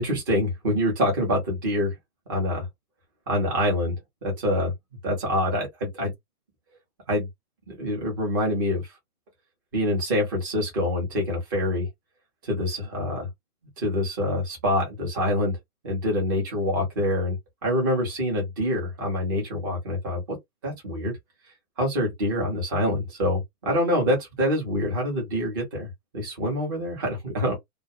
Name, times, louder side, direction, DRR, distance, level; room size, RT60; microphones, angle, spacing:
voice 1, 0.0-1.9 2.3-2.7 3.3-3.9 4.2-4.7 5.0-6.1 7.1-7.3 7.7-8.8 9.7-11.9 12.4-13.3 13.8-15.6 15.8-20.2 20.6-21.2 21.8-25.9 26.1-27.5, left 1 dB, 15° right, 0.5 m, -25 dB
2.2 x 2.1 x 2.6 m
hypercardioid pair, 145°, 46 cm